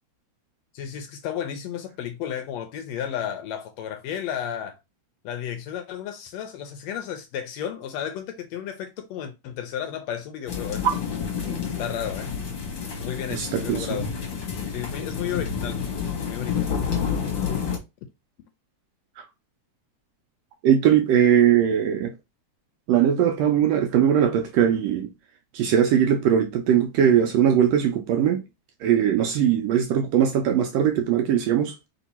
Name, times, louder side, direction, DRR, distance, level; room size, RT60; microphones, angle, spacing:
voice 1, 0.7-4.8 5.2-10.9 11.8-12.3 13.0-14.1 14.7-15.8 16.3-16.7, left 9 dB, 75° left, 1.6 m, -33 dB
sound 1, 10.5-17.8, left 6 dB, 50° left, 1.7 m, -29 dB
voice 2, 13.3-14.0 20.6-22.1 22.9-25.1 25.5-28.4 28.8-31.7, right 9 dB, 75° right, 1.6 m, -20 dB
4.4 x 2.8 x 4.1 m
omnidirectional pair, 3.4 m